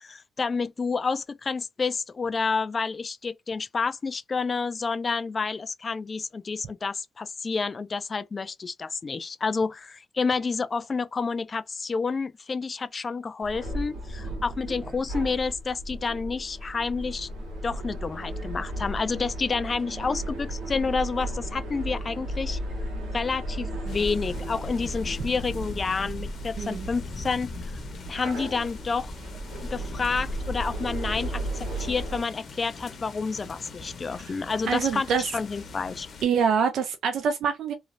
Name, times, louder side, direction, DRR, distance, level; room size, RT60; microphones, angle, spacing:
voice 1, 0.0-17.3 17.6-22.6 23.1-27.8 28.1-36.1, left 4 dB, 35° left, 0.3 m, -29 dB
sound 1, 13.4-32.2, right 1 dB, 90° right, 1.0 m, -35 dB
sound 2, 23.9-36.3, left 3 dB, 55° left, 0.7 m, -41 dB
voice 2, 26.6-26.9 34.7-35.3 36.2-37.7, right 6 dB, 70° right, 0.4 m, -25 dB
3.0 x 2.3 x 2.5 m
cardioid pair, 90°, 0 cm